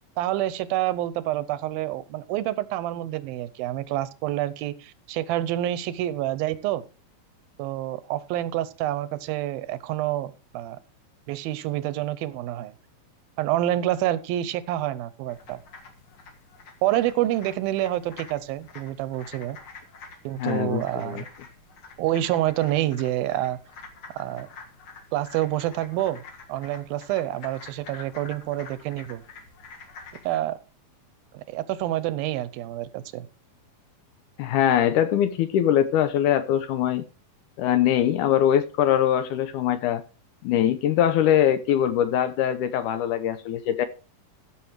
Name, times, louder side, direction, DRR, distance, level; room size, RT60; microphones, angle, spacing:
voice 1, 0.2-6.8 7.6-10.8 11.3-12.7 13.4-15.6 16.8-19.6 20.2-21.3 22.0-23.6 24.1-24.5 25.1-26.2 26.5-29.2 30.2-30.6 31.3-33.3, right 14 dB, 90° right, 2.6 m, -27 dB
sound 1, 15.3-30.4, left 4 dB, 45° left, 2.0 m, -47 dB
voice 2, 20.4-21.2 34.4-37.0 37.6-40.0 40.4-43.9, left 10 dB, 80° left, 2.0 m, -22 dB
14.0 x 6.4 x 4.6 m
omnidirectional pair, 4.1 m